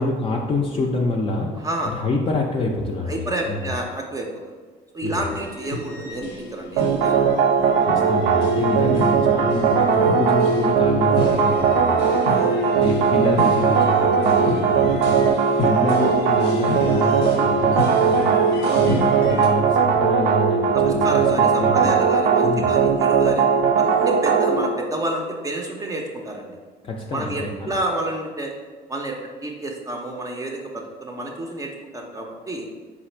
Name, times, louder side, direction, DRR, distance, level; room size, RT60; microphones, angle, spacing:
voice 1, 0.0-3.7 5.0-5.3 7.8-12.2 12.8-22.0 22.4-22.7 26.8-27.8, left 2 dB, 35° left, -1 dB, 0.4 m, -27 dB
voice 2, 1.6-1.9 3.1-4.4 4.9-7.4 12.2-12.6 18.6-18.9 20.7-23.5 23.8-26.6 27.1-28.5 28.9-32.6, right 1 dB, 20° right, 0 dB, 0.5 m, -29 dB
sound 1, 5.3-19.5, left 2 dB, 90° left, 0.7 m, -32 dB
sound 2, 6.8-24.7, right 6 dB, 90° right, 0.4 m, -19 dB
3.9 x 2.5 x 4.3 m, 1.4 s
cardioid pair, 110°, 17 cm